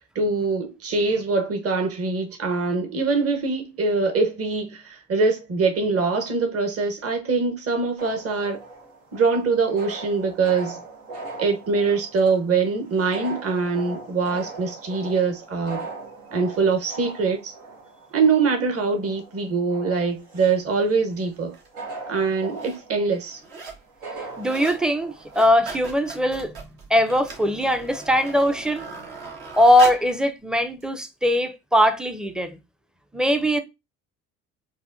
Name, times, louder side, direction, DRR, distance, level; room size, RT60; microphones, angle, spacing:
voice 1, 0.1-8.6 9.1-10.8 11.4-15.8 16.3-17.5 18.1-21.5 22.1-23.4, right 4 dB, 35° right, 1.1 m, -23 dB
sound 1, 8.0-25.5, right 3 dB, 85° right, 1.2 m, -40 dB
sound 2, 21.5-21.7 22.4-22.8 23.1-23.8 24.1-24.8 25.2-30.1 30.8-30.9, right 4 dB, 65° right, 1.4 m, -38 dB
voice 2, 24.4-26.5 26.9-28.9 29.5-32.6 33.1-33.6, left 1 dB, ahead, 0.5 m, -20 dB
4.7 x 2.2 x 2.5 m
hypercardioid pair, 60°, 40 cm